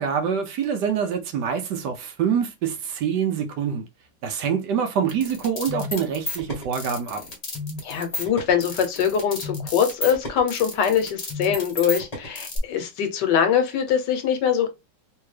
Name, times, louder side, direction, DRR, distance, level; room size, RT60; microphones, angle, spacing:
voice 1, 0.0-3.9 4.2-7.2, right 7 dB, 70° right, 1.1 m, -25 dB
sound 1, 5.1-12.6, left 2 dB, 30° left, 0.8 m, -32 dB
voice 2, 7.8-14.7, left 8 dB, 70° left, 1.3 m, -23 dB
3.4 x 2.6 x 3.2 m
omnidirectional pair, 2.1 m